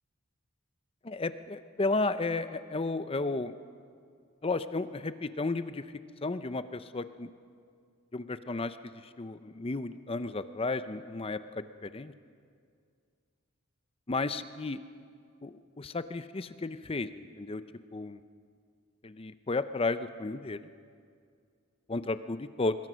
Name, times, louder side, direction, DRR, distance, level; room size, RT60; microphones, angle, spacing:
voice 1, 1.0-3.5 4.4-5.8 6.2-7.3 8.1-8.8 9.2-12.1 14.1-14.8 15.4-17.6 17.9-18.2 19.0-20.7 21.9-22.8, left 3 dB, 25° left, 12 dB, 0.6 m, -33 dB
24.5 x 21.0 x 6.2 m, 2.2 s
head